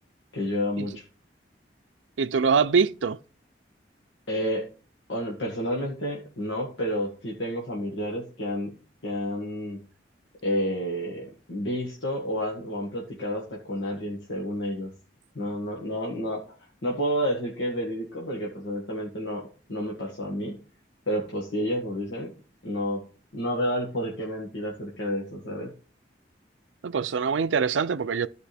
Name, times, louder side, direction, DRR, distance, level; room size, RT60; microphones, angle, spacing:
voice 1, 0.3-1.0 4.3-4.7 5.1-8.7 9.0-9.8 10.4-14.9 15.4-16.4 16.8-20.6 21.1-22.3 22.6-23.0 23.3-25.7, equal, 75° left, 1.9 m, -30 dB
voice 2, 2.2-3.2 26.8-28.3, right 5 dB, 85° right, 0.5 m, -24 dB
14.0 x 5.2 x 3.4 m
head